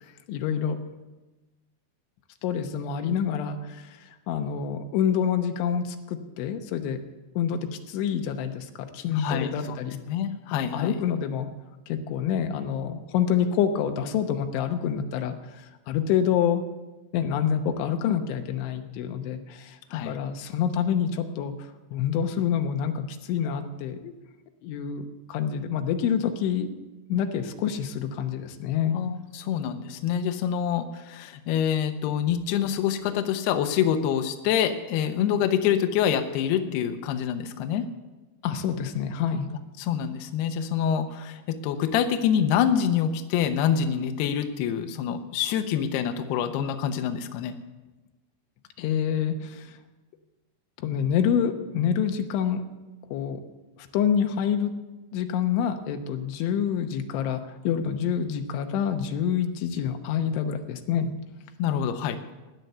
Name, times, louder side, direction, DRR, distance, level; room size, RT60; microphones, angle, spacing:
voice 1, 0.3-0.8 2.4-3.9 4.3-7.0 7.4-10.0 10.7-11.5 11.9-15.4 15.9-16.6 17.1-19.8 20.0-21.5 21.9-24.1 24.6-26.7 27.1-29.0 38.4-39.5 48.8-49.7 50.8-52.6 53.1-53.4 53.9-54.7 55.1-57.4 57.7-61.1, left 8 dB, 90° left, 6 dB, 3.5 m, -27 dB
voice 2, 9.1-9.8 10.1-11.0 19.9-20.2 28.9-37.9 39.8-47.6 61.6-62.2, left 9 dB, 75° left, 7 dB, 2.7 m, -26 dB
17.0 x 11.0 x 6.8 m, 1.1 s
omnidirectional pair, 5.3 m